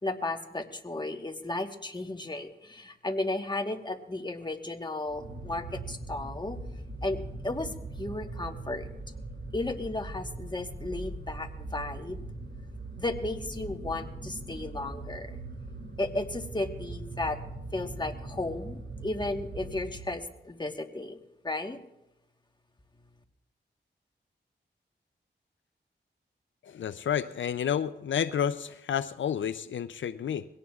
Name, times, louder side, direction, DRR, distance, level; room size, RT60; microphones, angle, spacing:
voice 1, 0.0-6.6 7.0-8.9 9.5-12.2 13.0-15.4 16.0-17.4 17.7-21.2 21.4-21.8, left 2 dB, 25° left, 5 dB, 1.3 m, -34 dB
sound 1, 5.1-20.4, right 2 dB, 85° right, 2.2 m, -41 dB
voice 2, 26.6-30.5, left 8 dB, 80° left, 13 dB, 0.4 m, -30 dB
22.0 x 17.0 x 2.4 m, 0.90 s
cardioid pair, 50°, 19 cm